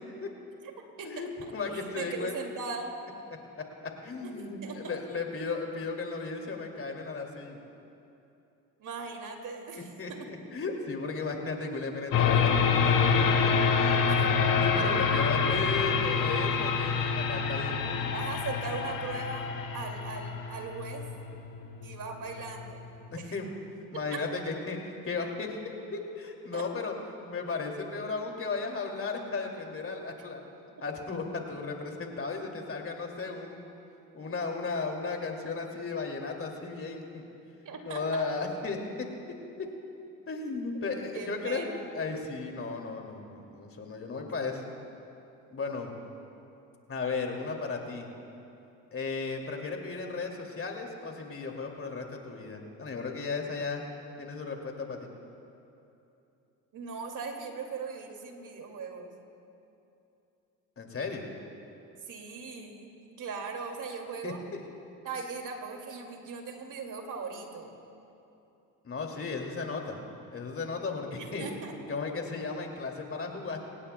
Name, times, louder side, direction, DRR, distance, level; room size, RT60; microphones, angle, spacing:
voice 1, 1.0-2.3 3.6-7.6 10.0-14.0 14.6-18.1 23.3-23.5 23.9-25.5 25.9-26.9 27.3-30.4 30.8-33.7 34.1-37.2 37.9-39.1 40.3-41.7 41.9-44.6 45.5-45.9 46.9-48.1 48.9-53.8 54.2-55.1 60.8-61.3 64.2-64.3 68.8-70.0 70.3-71.5 71.9-73.6, left 4 dB, 30° left, 2 dB, 2.5 m, -35 dB
voice 2, 1.7-2.9 4.2-4.3 4.6-5.0 8.8-10.2 14.1-14.2 14.5-14.6 18.1-21.1 21.8-22.8 24.1-24.2 26.5-26.7 37.6-38.2 41.1-41.9 56.7-59.1 62.1-62.9 63.2-64.4 65.0-67.7 71.2-71.8, right 4 dB, 45° right, 3 dB, 2.4 m, -39 dB
sound 1, 12.1-23.2, left 5 dB, 50° left, 1.8 m, -27 dB
25.0 x 18.5 x 2.2 m, 2.8 s
hypercardioid pair, 65°, 41 cm